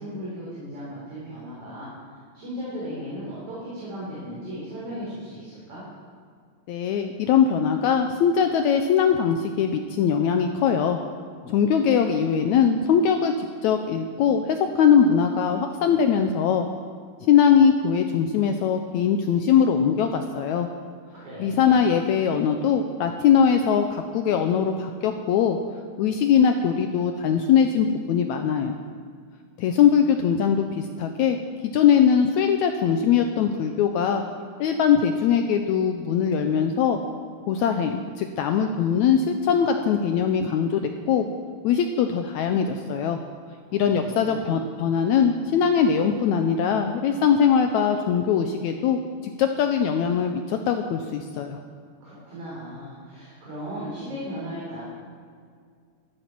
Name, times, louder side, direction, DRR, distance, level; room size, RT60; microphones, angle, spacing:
voice 1, 0.0-1.9 2.3-5.8 21.1-21.8 43.7-44.6 52.0-54.8, equal, 45° right, -8 dB, 4.6 m, -36 dB
voice 2, 6.7-11.0 11.5-16.7 17.3-20.7 21.4-25.6 26.0-28.8 29.6-31.4 31.7-34.2 34.6-37.0 37.5-41.3 41.6-43.2 43.7-51.6, left 7 dB, 80° left, 6 dB, 1.7 m, -21 dB
13.5 x 12.0 x 5.9 m, 2.1 s
omnidirectional pair, 3.9 m